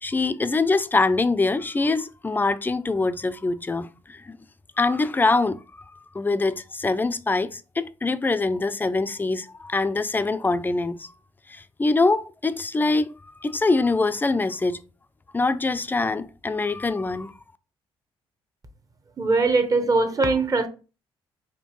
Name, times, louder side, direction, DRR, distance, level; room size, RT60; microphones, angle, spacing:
voice 1, 0.0-4.4 4.8-11.1 11.5-14.8 15.3-17.3, left 3 dB, 20° left, 0.4 m, -24 dB
voice 2, 19.2-20.7, right 3 dB, 35° right, 0.9 m, -21 dB
4.4 x 2.8 x 3.0 m
supercardioid pair, 70°, 10 cm